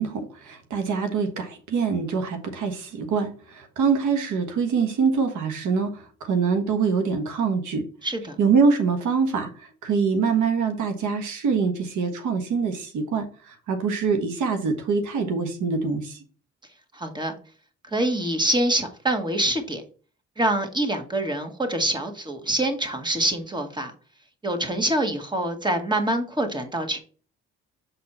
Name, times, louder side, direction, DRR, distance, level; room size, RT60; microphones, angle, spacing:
voice 1, 0.0-7.9 8.4-16.2, right 5 dB, 75° right, 1.4 m, -24 dB
voice 2, 8.0-8.4 16.9-17.3 17.9-19.8 20.4-23.9 24.4-27.0, right 1 dB, 15° right, 1.7 m, -25 dB
7.4 x 4.2 x 4.3 m
cardioid pair, 90°, 30 cm